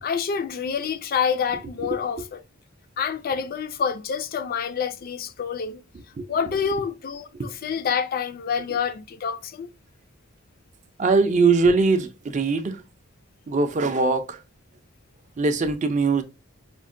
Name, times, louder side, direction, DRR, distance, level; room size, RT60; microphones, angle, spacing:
voice 1, 0.0-2.4 3.0-5.8 6.3-9.7, left 6 dB, 45° left, 0.3 m, -27 dB
voice 2, 1.9-2.3 6.2-6.3 7.3-7.5 11.0-12.8 13.5-14.4 15.4-16.2, right 4 dB, 35° right, 0.4 m, -22 dB
5.0 x 2.1 x 2.5 m
head